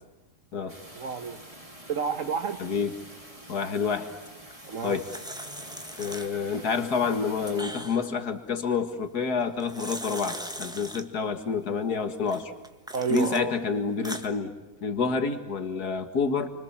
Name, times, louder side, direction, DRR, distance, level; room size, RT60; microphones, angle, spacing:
sound 1, 0.7-7.6, right 1 dB, 20° right, 4.9 m, -47 dB
voice 1, 0.9-1.4 1.9-2.6 4.6-5.0 12.9-13.5, right 6 dB, 55° right, 1.3 m, -30 dB
voice 2, 2.6-2.9 3.5-4.1 4.8-5.1 6.0-12.5 13.1-14.5 14.8-16.5, left 5 dB, 65° left, 2.5 m, -28 dB
sound 2, 4.5-6.6 7.0-8.2 9.4-11.0 12.3-13.4 13.8-14.3, equal, 5° right, 1.4 m, -40 dB
29.5 x 25.5 x 7.3 m
omnidirectional pair, 1.8 m